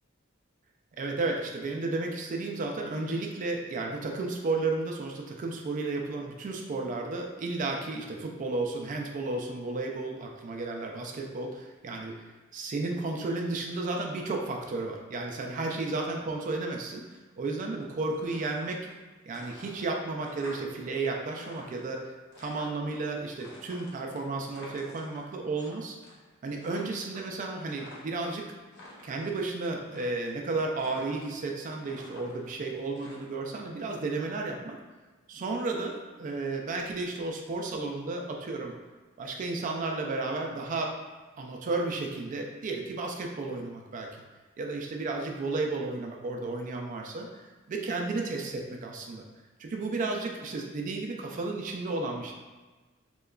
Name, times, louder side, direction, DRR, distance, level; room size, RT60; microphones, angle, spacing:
voice 1, 1.0-12.1 12.5-17.0 17.4-18.8 19.3-22.1 22.4-26.0 26.4-28.5 29.0-34.8 35.3-38.7 39.2-40.9 41.4-44.1 44.6-47.3 47.7-49.2 49.6-52.3, right 3 dB, 40° right, 1 dB, 0.3 m, -33 dB
sound 1, 18.1-19.0 19.3-20.9 21.2-23.0 23.4-25.7 26.0-26.3 26.6-28.2 28.6-29.4 29.8-30.5 30.8-31.5 31.8-33.6, left 1 dB, 55° left, 0.6 m, -50 dB
2.8 x 2.2 x 2.3 m, 1.3 s
head